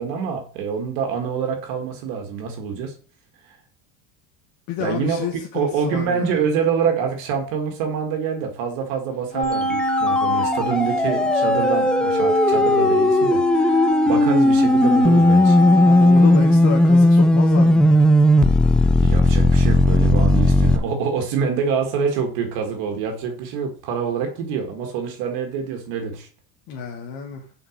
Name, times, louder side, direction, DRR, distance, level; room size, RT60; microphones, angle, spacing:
voice 1, 0.0-2.9 4.8-5.3 5.5-15.6 19.0-26.3, right 6 dB, 75° right, 1.9 m, -26 dB
voice 2, 4.7-6.4 15.9-18.0 26.7-27.5, left 6 dB, 65° left, 1.5 m, -29 dB
Wind instrument woodwind instrument, 9.3-17.0, left 2 dB, 20° left, 2.1 m, -24 dB
sound 1, 9.4-20.8, left 1 dB, 5° left, 0.3 m, -16 dB
5.8 x 5.2 x 6.5 m
cardioid pair, 135°, 36 cm